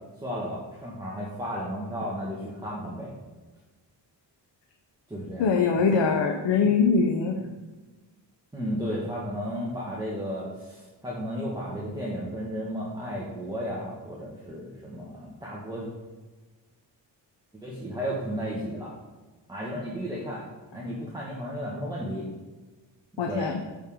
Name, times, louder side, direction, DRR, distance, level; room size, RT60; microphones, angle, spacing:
voice 1, 0.2-3.1 5.1-5.5 5.7-5.9 8.5-15.9 17.6-18.9 19.5-20.4 20.7-22.2 23.2-23.5, equal, 10° right, -6 dB, 1.7 m, -33 dB
voice 2, 5.4-7.4 23.2-23.5, left 5 dB, 80° left, 3 dB, 0.8 m, -22 dB
7.1 x 6.6 x 3.7 m, 1.2 s
cardioid pair, 100°, 43 cm